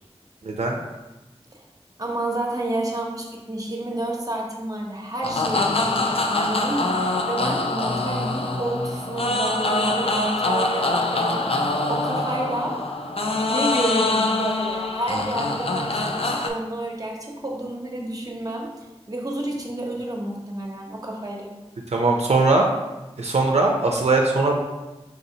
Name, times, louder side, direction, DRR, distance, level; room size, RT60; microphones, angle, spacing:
voice 1, 0.4-0.8 21.9-22.7 23.2-24.6, right 3 dB, 80° right, 0 dB, 0.4 m, -20 dB
voice 2, 2.0-12.8 13.5-21.6, right 1 dB, 35° right, 0 dB, 0.8 m, -30 dB
sound 1, 5.2-16.5, left 2 dB, 60° left, 0.4 m, -24 dB
4.0 x 3.8 x 2.8 m, 1.1 s
wide cardioid pair, 55°, 11 cm